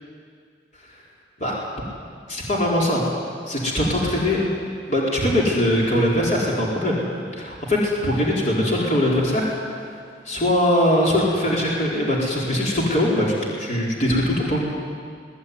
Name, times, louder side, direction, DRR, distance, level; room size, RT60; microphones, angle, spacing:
voice 1, 2.3-3.0 3.5-4.4 4.9-7.0 7.3-9.5 10.2-14.6, left 1 dB, 40° left, -4 dB, 4.5 m, -21 dB
22.0 x 19.0 x 9.7 m, 2.2 s
head